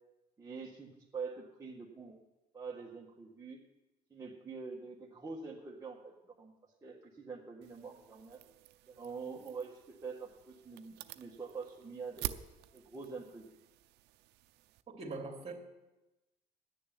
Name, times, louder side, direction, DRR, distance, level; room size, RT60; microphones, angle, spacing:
voice 1, 0.4-2.2 2.5-3.6 4.1-6.5 6.8-8.4 8.9-12.4 12.7-13.5, right 4 dB, 20° right, -4 dB, 1.6 m, -45 dB
sound 1, 7.6-14.8, right 14 dB, 85° right, 0.6 m, -48 dB
voice 2, 14.9-15.5, right 3 dB, 35° right, 2 dB, 2.7 m, -42 dB
11.0 x 6.7 x 9.1 m, 1.0 s
cardioid pair, 110°, 17 cm